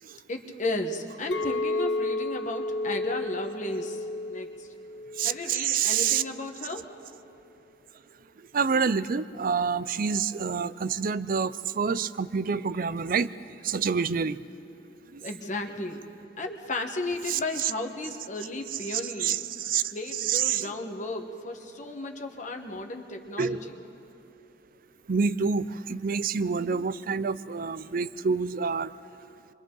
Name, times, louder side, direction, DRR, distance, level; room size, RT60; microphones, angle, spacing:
voice 1, 0.3-4.7 5.2-6.9 15.2-16.1 16.4-19.5 19.9-23.6, left 2 dB, 45° left, 4 dB, 1.3 m, -34 dB
Chink clink, 1.3-5.7 6.0-6.4, left 2 dB, 85° left, 0.8 m, -32 dB
voice 2, 5.2-6.2 8.5-13.3 13.6-14.4 15.1-15.2 17.3-17.7 18.9-19.8 20.2-20.7 23.4-23.6 25.1-28.9, right 6 dB, 50° right, 16 dB, 0.5 m, -27 dB
27.5 x 24.0 x 3.9 m, 2.8 s
head